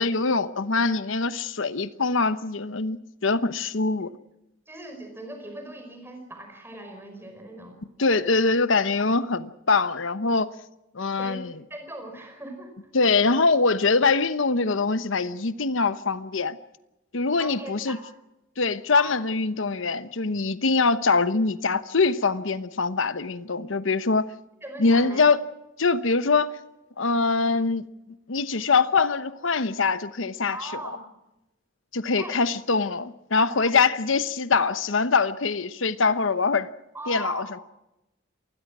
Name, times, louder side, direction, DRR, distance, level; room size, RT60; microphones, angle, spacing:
voice 1, 0.0-4.1 8.0-10.5 10.9-11.6 12.9-16.6 17.1-18.0 18.6-24.3 24.8-25.4 25.8-26.6 27.0-27.9 28.3-30.6 31.9-36.7 37.1-37.4, left 4 dB, 80° left, 1.0 m, -23 dB
voice 2, 4.7-7.8 11.1-11.4 11.7-12.7 17.4-18.0 18.9-19.2 24.6-25.2 30.5-31.0 32.2-32.4 33.6-33.7 36.9-37.5, right 1 dB, 10° right, 5.1 m, -39 dB
27.0 x 20.5 x 6.1 m
head